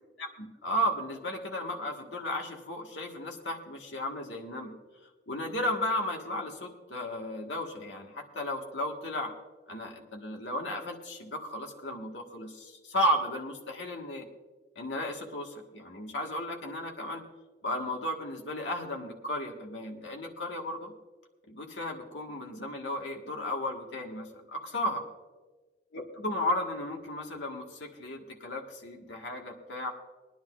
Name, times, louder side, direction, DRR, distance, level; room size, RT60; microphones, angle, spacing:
voice 1, 0.2-4.7 5.3-9.3 9.7-14.3 14.7-17.2 17.6-20.9 21.5-25.0 25.9-29.9, left 1 dB, 85° left, 2 dB, 1.7 m, -34 dB
23.0 x 10.0 x 2.5 m, 1.3 s
head